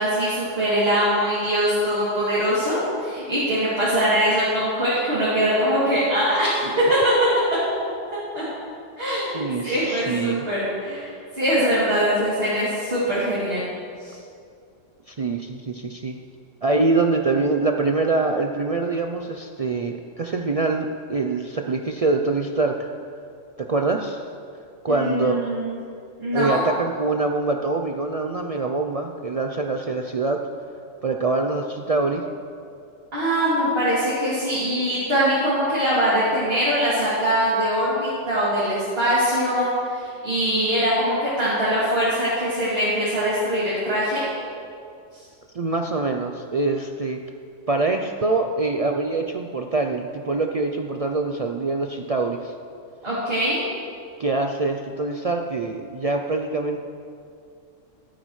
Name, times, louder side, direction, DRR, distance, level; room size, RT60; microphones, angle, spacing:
voice 1, 0.0-6.6 6.9-7.1 8.1-8.4 9.0-13.7 14.0-14.1 24.9-25.8 26.2-26.6 33.1-44.2 53.0-53.6, equal, 50° right, -10 dB, 3.0 m, -22 dB
voice 2, 9.3-10.4 15.1-16.2 16.6-22.9 23.6-24.2 24.8-25.4 26.3-30.4 31.0-32.2 45.5-47.2 47.7-52.5 54.2-56.8, right 3 dB, 65° right, 3 dB, 0.3 m, -24 dB
13.5 x 13.5 x 3.2 m, 2.4 s
omnidirectional pair, 1.3 m